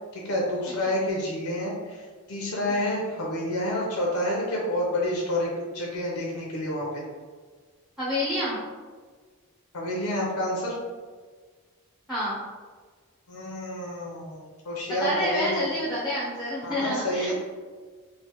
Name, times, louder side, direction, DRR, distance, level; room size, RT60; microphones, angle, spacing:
voice 1, 0.1-6.9 9.7-10.7 13.3-15.7 16.6-17.3, left 1 dB, 75° left, -3 dB, 0.6 m, -29 dB
voice 2, 8.0-8.6 12.1-12.4 14.9-17.3, left 1 dB, ahead, -7 dB, 0.5 m, -28 dB
3.2 x 2.1 x 2.9 m, 1.5 s
head